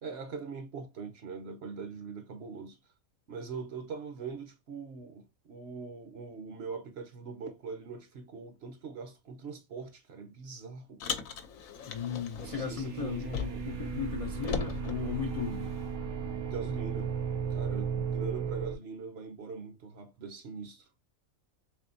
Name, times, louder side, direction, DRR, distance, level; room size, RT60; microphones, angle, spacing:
voice 1, 0.0-2.8 3.3-11.0 12.5-13.6 16.5-17.1 17.5-20.9, right 5 dB, 55° right, 0.9 m, -42 dB
Car, 11.0-13.8 14.1-15.9, left 6 dB, 80° left, 1.0 m, -39 dB
voice 2, 11.9-15.7 17.9-18.0, left 7 dB, 55° left, 0.4 m, -36 dB
sound 1, 12.3-18.8, right 6 dB, 90° right, 1.1 m, -35 dB
3.6 x 3.5 x 2.6 m
omnidirectional pair, 1.4 m